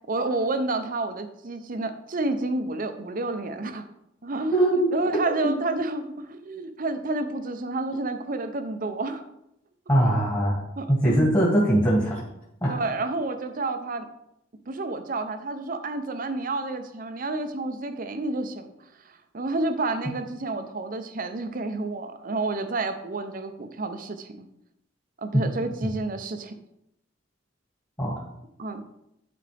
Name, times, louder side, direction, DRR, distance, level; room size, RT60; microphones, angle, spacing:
voice 1, 0.1-3.8 4.2-9.2 10.8-11.3 12.6-14.1 14.7-18.7 19.3-24.5 25.2-26.6 28.6-28.8, right 2 dB, 45° right, 9 dB, 0.7 m, -30 dB
voice 2, 4.5-4.9 5.4-5.5 9.9-10.6 10.9-12.2 12.6-12.8 25.3-25.4 28.0-28.2, right 1 dB, 20° left, -6 dB, 2.0 m, -21 dB
11.5 x 4.3 x 3.4 m, 0.79 s
head